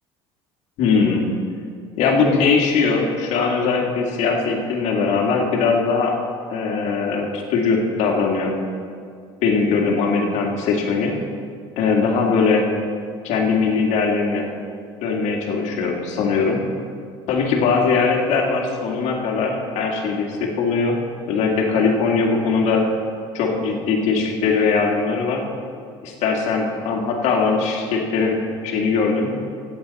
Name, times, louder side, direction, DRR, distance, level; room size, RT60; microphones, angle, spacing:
voice 1, 0.8-1.3 2.0-6.1 6.5-8.5 9.4-11.1 11.8-12.7 13.2-14.5 15.0-16.6 17.3-21.0 21.3-22.9 23.3-25.4 26.0-29.3, left 4 dB, 65° left, 1 dB, 2.0 m, -20 dB
17.0 x 8.0 x 4.1 m, 2.3 s
supercardioid pair, 90°, 13 cm